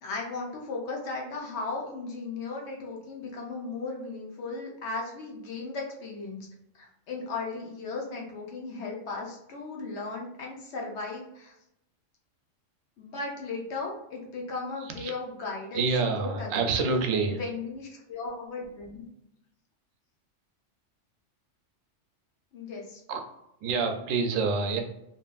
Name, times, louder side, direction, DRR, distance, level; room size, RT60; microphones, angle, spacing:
voice 1, 0.0-6.5 6.8-11.5 13.0-15.9 16.2-16.7 17.3-19.0 22.5-23.0, left 3 dB, 65° left, -1 dB, 1.0 m, -36 dB
voice 2, 15.7-17.4 23.1-23.2 23.6-24.8, right 4 dB, 90° right, 5 dB, 1.0 m, -27 dB
2.8 x 2.5 x 2.3 m, 0.81 s
omnidirectional pair, 1.3 m